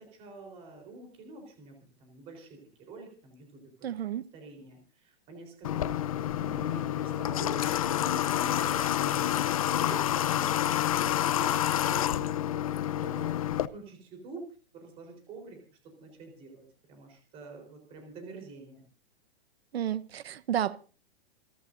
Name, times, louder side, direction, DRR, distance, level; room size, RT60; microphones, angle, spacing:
voice 1, 0.0-3.9 4.3-15.6 16.0-16.6 16.9-18.8, right 3 dB, 20° right, 4.0 m, -47 dB
voice 2, 3.8-4.2 19.7-20.8, right 10 dB, 70° right, 1.2 m, -31 dB
Water / Water tap faucet, 5.6-13.7, left 11 dB, 35° left, 0.6 m, -28 dB
28.5 x 12.0 x 2.7 m
hypercardioid pair, 180°, 32 cm